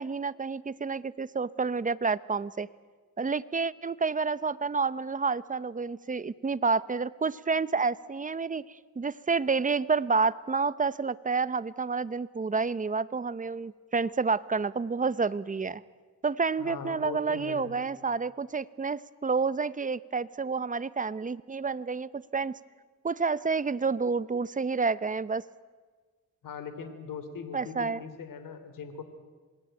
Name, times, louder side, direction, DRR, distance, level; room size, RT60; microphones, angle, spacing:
voice 1, 0.0-2.7 3.2-8.7 9.0-15.8 16.2-22.6 23.0-25.4 27.5-28.0, right 4 dB, 25° right, 17 dB, 0.8 m, -29 dB
voice 2, 16.6-17.8 26.4-29.0, left 6 dB, 70° left, 10 dB, 3.4 m, -40 dB
27.0 x 20.0 x 9.1 m, 1.4 s
cardioid pair, 95°, 34 cm